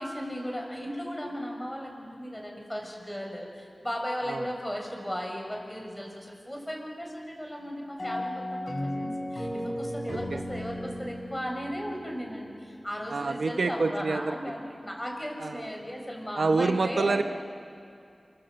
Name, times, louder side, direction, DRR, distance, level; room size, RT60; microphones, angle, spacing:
voice 1, 0.0-17.2, equal, 10° left, 1 dB, 6.3 m, -36 dB
sound 1, 8.0-12.6, left 1 dB, 35° left, 6.4 m, -35 dB
voice 2, 10.1-10.4 13.1-14.3 15.4-15.6 16.4-17.2, right 3 dB, 75° right, 7 dB, 1.0 m, -27 dB
28.0 x 25.0 x 7.8 m, 2.5 s
wide cardioid pair, 65°, 0 cm